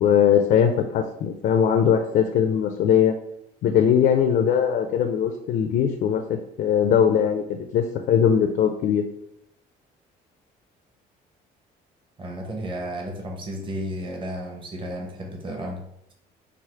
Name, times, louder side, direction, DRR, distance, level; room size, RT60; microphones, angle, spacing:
voice 1, 0.0-3.1 3.6-9.0, left 8 dB, 60° left, 5 dB, 0.5 m, -20 dB
voice 2, 12.2-15.8, equal, 30° right, 1 dB, 0.9 m, -33 dB
4.8 x 2.0 x 4.4 m, 0.78 s
cardioid pair, 110°, 17 cm